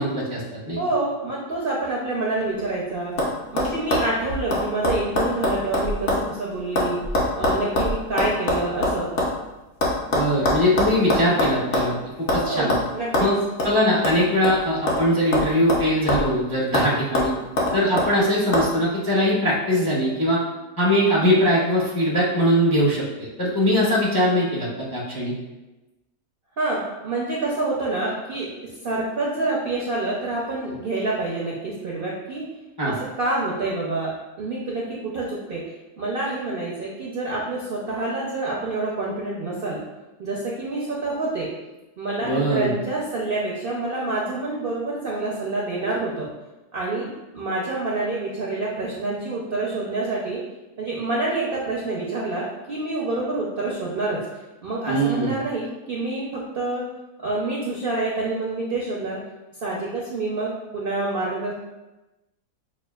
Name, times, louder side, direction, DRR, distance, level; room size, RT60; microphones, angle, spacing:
voice 1, 0.0-0.8 10.1-11.9 12.3-12.7 13.2-13.3 13.6-17.3 17.7-20.4 20.8-25.3 32.8-33.0 42.2-42.7 54.9-55.3, equal, 30° left, -6 dB, 0.4 m, -21 dB
voice 2, 0.8-3.1 3.5-7.0 7.4-9.1 12.4-13.3 26.6-28.5 28.8-32.4 32.8-34.1 34.4-35.6 36.0-39.8 40.2-41.5 42.0-46.3 46.7-50.4 50.8-54.2 54.6-56.8 57.2-59.2 59.6-61.5, right 2 dB, 65° right, -4 dB, 0.5 m, -27 dB
sound 1, 2.4-2.8 3.2-3.3 3.6-6.3 6.5-9.3 9.8-11.9 12.3-12.4 12.7-12.8 13.1-13.3 13.6-13.7 14.0-15.1 15.3-16.4 16.7-16.9 17.1-18.1 18.5-18.7, left 1 dB, 55° left, 0.9 m, -23 dB
6.0 x 2.4 x 2.3 m, 1.0 s
omnidirectional pair, 1.8 m